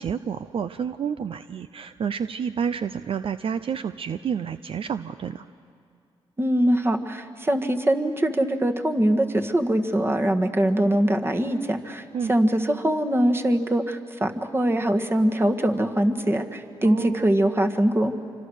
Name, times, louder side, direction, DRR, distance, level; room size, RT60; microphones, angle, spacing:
voice 1, 0.0-5.5 12.1-12.3 16.8-17.4, right 7 dB, 55° right, 12 dB, 0.5 m, -29 dB
voice 2, 6.4-18.1, right 1 dB, 20° right, 5 dB, 1.7 m, -23 dB
27.0 x 25.0 x 6.4 m, 2.4 s
cardioid pair, 70°, 11 cm